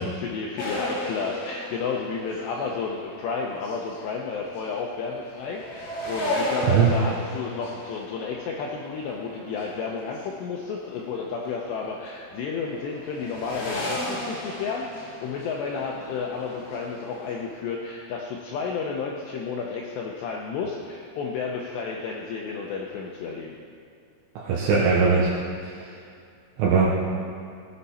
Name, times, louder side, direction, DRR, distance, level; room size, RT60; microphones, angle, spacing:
voice 1, 0.0-23.6, left 5 dB, 80° left, -1 dB, 2.5 m, -32 dB
sound 1, 0.6-10.3 10.7-12.4 12.7-17.4, left 1 dB, 55° left, 4.7 m, -35 dB
voice 2, 24.4-25.3 26.6-26.9, right 5 dB, 75° right, -4 dB, 3.5 m, -20 dB
18.0 x 7.9 x 4.2 m, 2.5 s
omnidirectional pair, 5.9 m